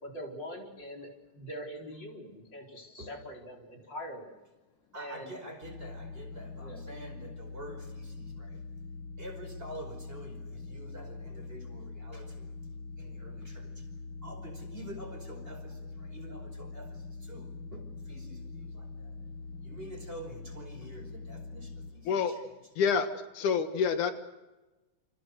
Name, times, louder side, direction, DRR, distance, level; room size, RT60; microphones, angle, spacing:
voice 1, 0.0-4.3 4.9-5.3 6.6-6.8, equal, 35° left, 1 dB, 4.9 m, -43 dB
voice 2, 4.9-8.6 9.2-12.5 13.0-13.9 14.2-19.2 19.6-22.5, right 1 dB, 15° right, 3 dB, 5.3 m, -47 dB
sound 1, 5.6-21.9, left 3 dB, 55° left, 1.5 m, -43 dB
voice 3, 22.8-23.1 23.3-24.1, left 6 dB, 85° left, 8 dB, 3.1 m, -27 dB
29.0 x 27.5 x 6.5 m, 1.1 s
omnidirectional pair, 3.4 m